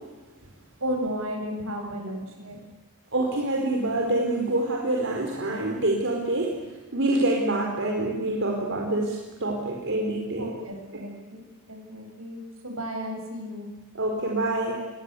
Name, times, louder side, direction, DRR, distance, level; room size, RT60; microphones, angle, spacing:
voice 1, 0.8-2.6 10.4-12.4 12.6-13.7, equal, 75° right, 3 dB, 7.8 m, -34 dB
voice 2, 3.1-6.6 6.9-10.5 10.9-11.0 13.9-14.8, right 2 dB, 60° right, 0 dB, 4.5 m, -26 dB
29.0 x 22.5 x 8.4 m, 1.2 s
head